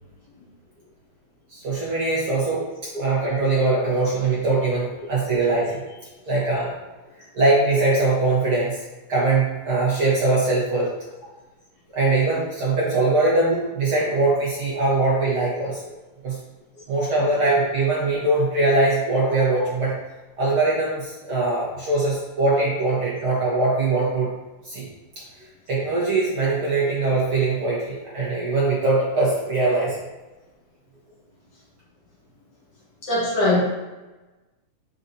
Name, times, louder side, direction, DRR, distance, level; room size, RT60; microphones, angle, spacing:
voice 1, 1.5-5.8 6.3-6.7 7.3-8.8 9.1-10.9 11.9-15.8 16.2-16.4 16.9-19.9 20.4-24.3 24.7-24.8 25.7-30.0, right 2 dB, 50° right, -7 dB, 1.8 m, -22 dB
voice 2, 33.0-33.6, left 2 dB, 50° left, -5 dB, 2.3 m, -20 dB
8.7 x 5.2 x 2.8 m, 1.1 s
omnidirectional pair, 3.5 m